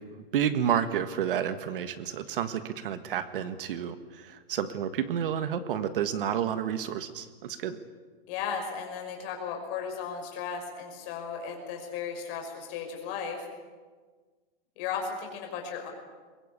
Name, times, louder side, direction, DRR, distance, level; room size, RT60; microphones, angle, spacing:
voice 1, 0.1-7.8, right 9 dB, 60° right, 11 dB, 1.7 m, -30 dB
voice 2, 8.3-13.5 14.8-15.9, left 6 dB, 35° left, 2 dB, 5.4 m, -35 dB
22.5 x 22.5 x 8.4 m, 1.4 s
supercardioid pair, 170°, 30 cm